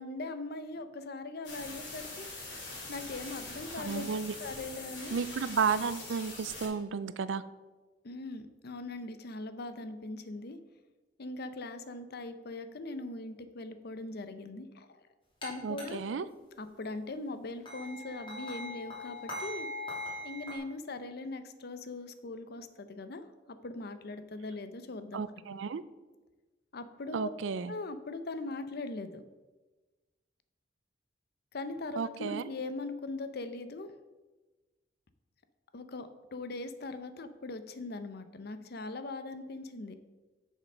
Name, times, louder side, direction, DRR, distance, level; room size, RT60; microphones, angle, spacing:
voice 1, 0.0-4.1 4.4-5.2 8.0-10.6 11.2-15.0 15.4-16.0 16.6-19.7 20.2-25.2 25.5-25.6 26.7-27.3 27.7-29.2 31.5-33.9 35.7-40.0, left 2 dB, 60° left, 11 dB, 0.7 m, -40 dB
sound 1, 1.4-6.7, left 2 dB, 85° left, 3.1 m, -43 dB
voice 2, 3.8-4.3 5.1-7.4 15.6-16.3 25.1-25.8 27.1-27.7 32.0-32.5, right 5 dB, 80° right, 15 dB, 0.4 m, -33 dB
sound 2, 15.4-15.5 15.8-15.9 17.6-20.6, left 1 dB, 25° left, 2.7 m, -40 dB
6.9 x 6.5 x 5.5 m, 1.2 s
head